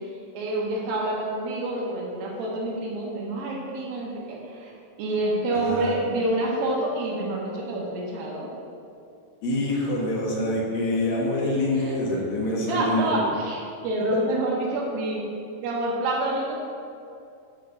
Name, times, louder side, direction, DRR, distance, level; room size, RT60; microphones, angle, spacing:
voice 1, 0.3-4.7 5.0-8.5 11.8-12.0 12.7-15.2 15.6-16.6, right 1 dB, 80° right, -3 dB, 3.0 m, -27 dB
voice 2, 5.6-6.0 9.4-13.2, left 1 dB, 65° left, -3 dB, 1.9 m, -26 dB
9.9 x 4.6 x 3.9 m, 2.5 s
omnidirectional pair, 4.0 m